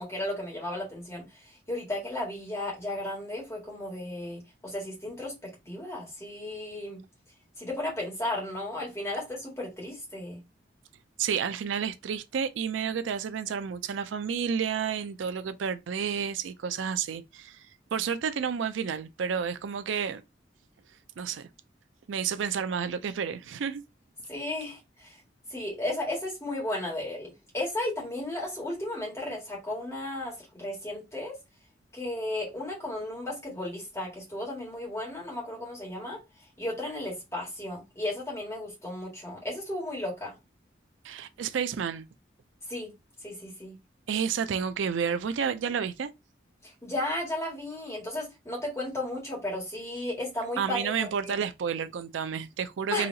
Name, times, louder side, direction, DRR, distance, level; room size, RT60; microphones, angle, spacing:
voice 1, 0.0-7.0 7.6-10.4 24.3-25.2 25.5-31.4 31.9-36.2 36.6-40.3 42.7-42.9 43.2-43.8 46.6-51.3 52.9-53.1, left 1 dB, 15° left, 1.7 m, -34 dB
voice 2, 11.2-17.6 17.9-20.2 21.2-21.5 22.1-23.8 41.0-42.1 44.1-46.1 50.6-53.1, right 7 dB, 90° right, 0.4 m, -30 dB
4.1 x 2.8 x 2.7 m
head